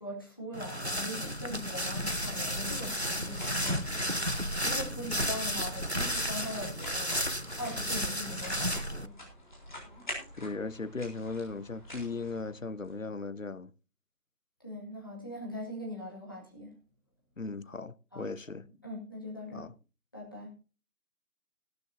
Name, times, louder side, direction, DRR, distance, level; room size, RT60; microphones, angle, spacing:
voice 1, 0.0-9.3 14.6-16.8 18.1-18.3 18.8-19.7 20.1-20.5, left 1 dB, 15° left, 2.1 m, -41 dB
sound 1, 0.5-9.1, equal, 45° right, 0.5 m, -33 dB
sound 2, 1.6-12.9, left 1 dB, 30° left, 4.0 m, -46 dB
voice 2, 10.3-13.7 17.4-18.6 19.5-19.7, left 3 dB, 55° left, 0.7 m, -37 dB
15.5 x 12.5 x 2.7 m
figure-of-eight pair, 170°, 47 cm